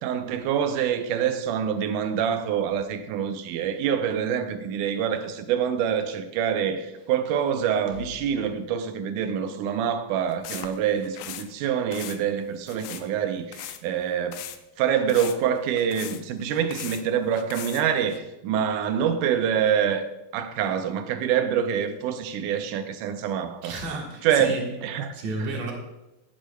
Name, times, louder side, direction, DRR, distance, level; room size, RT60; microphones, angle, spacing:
voice 1, 0.0-14.4 14.8-20.1 20.3-23.8 24.2-24.5 24.8-25.5, right 8 dB, 80° right, 2.0 m, -26 dB
sound 1, 10.3-11.5 11.9-12.2 12.7-13.1 13.5-13.8 14.3-14.6 15.1-17.0 17.3-18.2, left 11 dB, 85° left, 2.4 m, -39 dB
voice 2, 23.6-24.7 25.1-25.7, right 2 dB, 60° right, 2.6 m, -32 dB
17.0 x 7.4 x 2.2 m
omnidirectional pair, 4.0 m